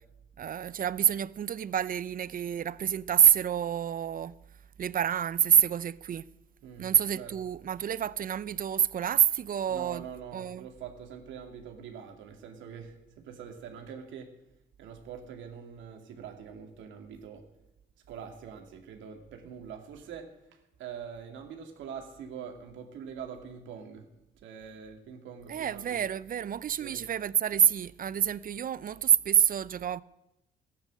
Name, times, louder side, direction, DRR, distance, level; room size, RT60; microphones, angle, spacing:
voice 1, 0.4-4.3 4.8-6.3 6.8-10.7 25.5-30.0, right 9 dB, 50° right, 0.6 m, -27 dB
voice 2, 6.6-7.4 9.7-13.0 13.2-14.3 14.8-17.4 18.1-20.3 20.8-24.1 24.4-26.0 26.8-27.0, right 7 dB, 80° right, 2.3 m, -44 dB
14.0 x 10.0 x 6.4 m
cardioid pair, 75°, 19 cm